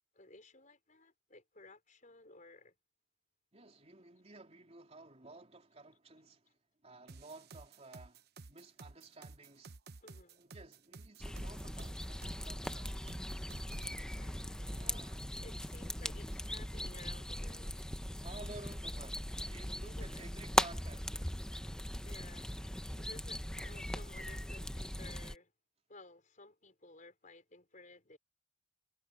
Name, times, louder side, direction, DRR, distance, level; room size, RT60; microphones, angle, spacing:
voice 1, 0.1-2.7 10.0-10.4 13.4-15.0 15.3-17.8 19.8-20.2 21.5-25.5 25.9-28.2, left 2 dB, 40° left, 4.6 m, -57 dB
voice 2, 3.5-9.8 10.4-13.0 14.7-15.2 18.2-21.3, right 2 dB, 35° right, 3.6 m, -54 dB
sound 1, 7.1-13.9, right 3 dB, 55° right, 0.9 m, -53 dB
sound 2, 11.2-25.3, left 1 dB, 5° left, 0.7 m, -39 dB
head